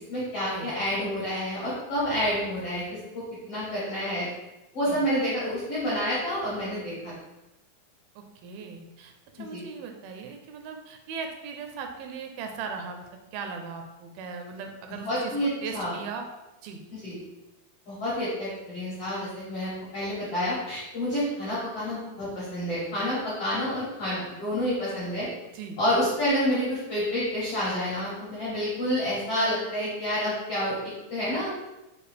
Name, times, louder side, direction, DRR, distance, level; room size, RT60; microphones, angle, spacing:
voice 1, 0.1-4.3 4.7-7.1 9.4-9.6 15.0-15.9 17.0-17.2 17.9-25.3 25.8-30.8 31.1-31.5, equal, 70° left, -9 dB, 1.4 m, -29 dB
voice 2, 8.2-16.3 16.6-16.8 25.5-25.8, right 5 dB, 85° right, 4 dB, 2.3 m, -38 dB
6.6 x 2.3 x 3.2 m, 1.0 s
omnidirectional pair, 4.3 m